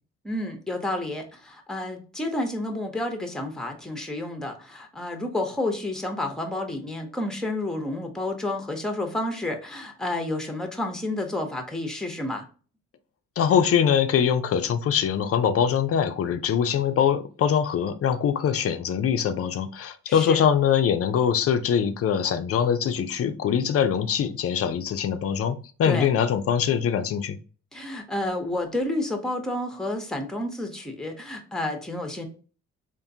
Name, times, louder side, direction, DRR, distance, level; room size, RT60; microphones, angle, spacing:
voice 1, 0.2-12.5 20.1-20.5 25.8-26.1 27.7-32.3, left 1 dB, ahead, 0.8 m, -30 dB
voice 2, 13.4-27.4, left 8 dB, 50° left, 0.5 m, -23 dB
3.6 x 2.5 x 2.7 m
cardioid pair, 90°, 30 cm